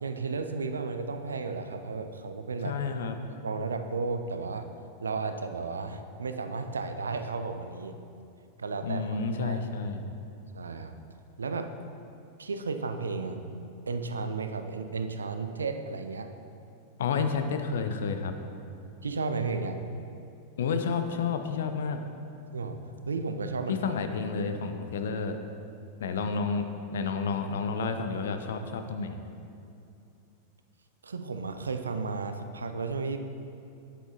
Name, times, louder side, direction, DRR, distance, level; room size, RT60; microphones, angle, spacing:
voice 1, 0.0-2.8 3.4-4.7 5.0-7.9 8.6-9.7 10.5-10.9 11.4-11.7 12.4-13.4 13.9-16.3 19.0-19.8 22.5-22.8 23.1-23.9 31.0-33.2, right 4 dB, 75° right, 8 dB, 0.4 m, -33 dB
voice 2, 2.6-3.2 8.8-10.0 17.0-18.3 20.6-22.0 23.7-25.4 26.0-29.2, left 5 dB, 60° left, 7 dB, 0.6 m, -30 dB
9.1 x 7.8 x 3.0 m, 2.6 s
figure-of-eight pair, 90°, 0 cm